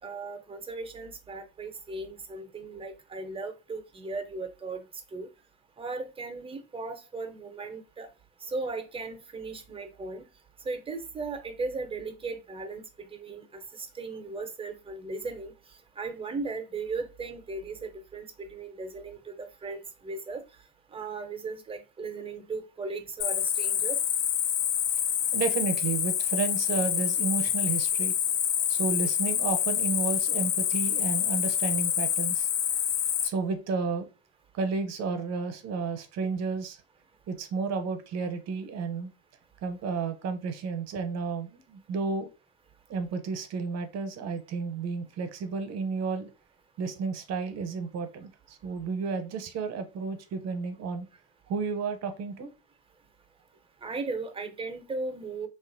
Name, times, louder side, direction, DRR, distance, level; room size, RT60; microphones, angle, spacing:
voice 1, 0.0-4.8 5.1-5.3 5.8-8.1 8.4-10.3 10.6-15.5 16.0-20.4 20.9-24.0 53.8-55.5, right 3 dB, 15° right, 0.6 m, -37 dB
Cricket, 23.2-33.3, left 9 dB, 50° left, 0.5 m, -27 dB
voice 2, 25.3-28.2 28.7-32.5 33.2-34.1 34.5-36.8 37.3-39.1 39.6-42.3 42.9-46.3 46.8-51.1 51.5-52.5, right 4 dB, 50° right, 0.7 m, -32 dB
2.8 x 2.4 x 2.5 m
supercardioid pair, 80°, 34 cm